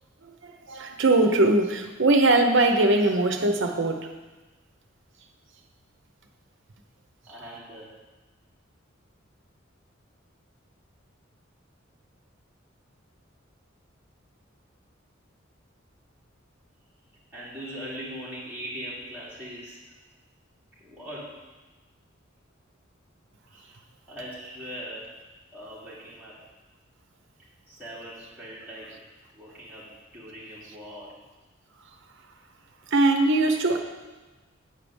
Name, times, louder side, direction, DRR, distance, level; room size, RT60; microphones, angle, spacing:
voice 1, 0.2-4.1 32.9-33.8, right 2 dB, 65° right, 5 dB, 0.9 m, -21 dB
voice 2, 7.3-7.9 17.3-19.8 20.8-21.3 23.5-23.8 24.1-25.1 25.5-26.4 27.7-29.1 29.3-31.2, equal, 10° right, -10 dB, 2.9 m, -40 dB
9.1 x 4.9 x 7.2 m, 1.2 s
head